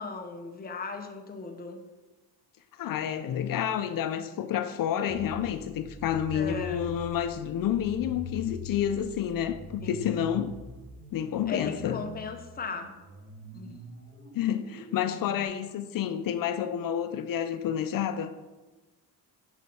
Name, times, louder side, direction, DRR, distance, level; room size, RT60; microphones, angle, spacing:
voice 1, 0.0-1.8 6.3-6.9 9.8-9.9 11.5-12.9 13.5-13.8, left 4 dB, 25° left, 0.7 m, -37 dB
voice 2, 2.8-10.5 11.1-12.0 14.3-18.3, left 9 dB, 60° left, 0.5 m, -29 dB
sound 1, 5.1-15.4, left 2 dB, 30° right, 2.6 m, -43 dB
7.1 x 6.4 x 4.3 m
cardioid pair, 140°, 38 cm